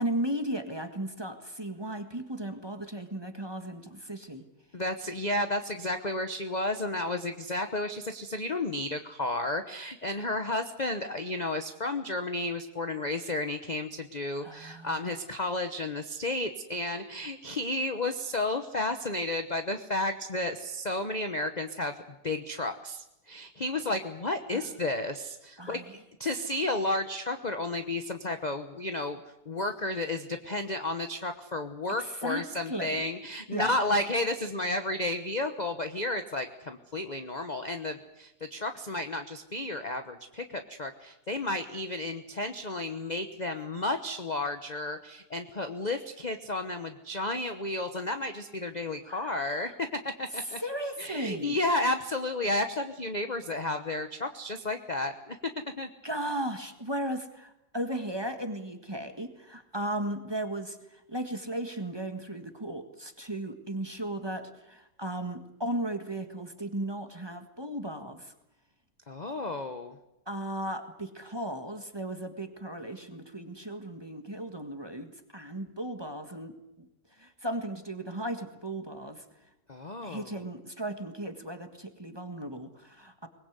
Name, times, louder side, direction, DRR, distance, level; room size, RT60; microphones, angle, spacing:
voice 1, 0.0-4.4 14.4-15.1 24.5-24.7 25.6-25.9 32.0-33.0 33.5-33.7 49.0-49.7 50.6-51.6 56.0-68.3 70.3-76.9 77.2-79.2 80.0-83.3, right 1 dB, 15° right, 7 dB, 1.6 m, -36 dB
voice 2, 4.7-21.9 22.2-29.2 29.5-49.7 50.2-50.6 51.0-55.4 55.8-55.9 69.1-70.0 79.7-80.3, left 2 dB, 30° left, 7 dB, 0.9 m, -32 dB
23.0 x 20.5 x 8.1 m, 0.91 s
omnidirectional pair, 2.1 m